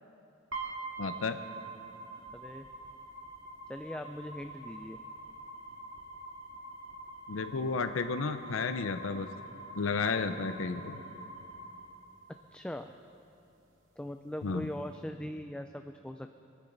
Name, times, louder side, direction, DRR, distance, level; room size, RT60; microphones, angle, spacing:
sound 1, 0.5-12.5, right 2 dB, 80° right, 2.2 m, -45 dB
voice 1, 1.0-1.4 7.3-9.3 9.7-11.0 14.4-14.7, left 4 dB, 80° left, 9 dB, 0.6 m, -32 dB
voice 2, 2.3-2.7 3.7-5.0 12.5-12.9 14.0-16.3, left 1 dB, 5° left, 6 dB, 0.3 m, -40 dB
25.5 x 9.8 x 4.0 m, 2.8 s
head